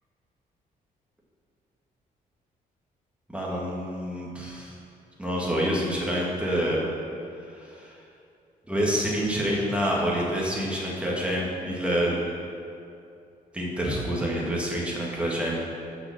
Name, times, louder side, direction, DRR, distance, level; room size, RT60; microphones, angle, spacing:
voice 1, 3.3-4.7 5.2-6.8 7.7-7.9 8.7-12.2 13.5-15.5, equal, 5° right, -5 dB, 1.9 m, -27 dB
6.8 x 5.6 x 7.2 m, 2.6 s
cardioid pair, 120°, 16 cm